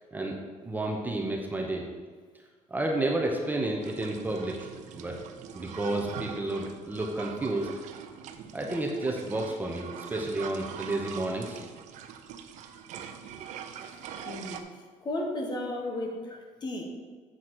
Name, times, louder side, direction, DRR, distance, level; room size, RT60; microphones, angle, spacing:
voice 1, 0.6-1.8 2.7-4.7 4.9-5.2 5.5-7.7 8.5-11.6, right 2 dB, 15° right, 0 dB, 0.9 m, -31 dB
sound 1, 3.8-14.6, right 8 dB, 70° right, 0.6 m, -43 dB
voice 2, 14.2-14.6 15.0-16.8, left 1 dB, 35° left, 1 dB, 1.3 m, -34 dB
7.8 x 4.1 x 6.1 m, 1.5 s
cardioid pair, 125°, 13 cm